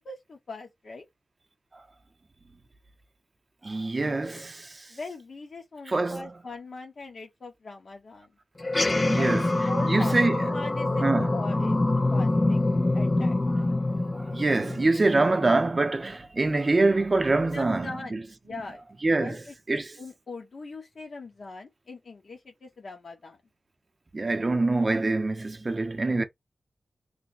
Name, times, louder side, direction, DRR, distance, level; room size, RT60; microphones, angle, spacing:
voice 1, 0.0-1.0 4.9-8.3 9.2-9.3 9.7-10.1 10.5-11.8 12.1-13.7 17.5-18.2 18.4-18.8 19.2-23.4, left 3 dB, 60° left, 0.9 m, -41 dB
voice 2, 3.6-4.9 5.9-6.3 9.0-9.5 9.9-10.5 11.0-11.4 14.1-18.2 19.0-19.4 19.7-19.9 24.1-26.2, right 2 dB, 35° right, 0.6 m, -25 dB
sound 1, 8.6-15.3, left 2 dB, 25° left, 0.5 m, -25 dB
3.2 x 2.1 x 3.9 m
wide cardioid pair, 120°, 0 cm